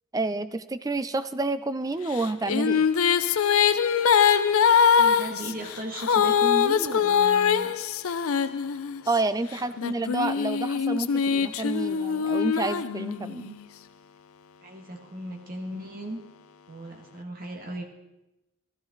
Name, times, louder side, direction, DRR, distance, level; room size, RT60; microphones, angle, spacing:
voice 1, 0.1-2.9 9.1-13.6, right 2 dB, 15° right, 13 dB, 0.4 m, -29 dB
Female singing, 2.2-9.1 9.8-13.5, left 7 dB, 85° left, 0.5 m, -23 dB
voice 2, 5.0-7.7 9.5-10.0 14.6-16.2 16.7-17.8, equal, 40° right, 2 dB, 1.7 m, -36 dB
14.0 x 13.0 x 3.9 m, 0.97 s
head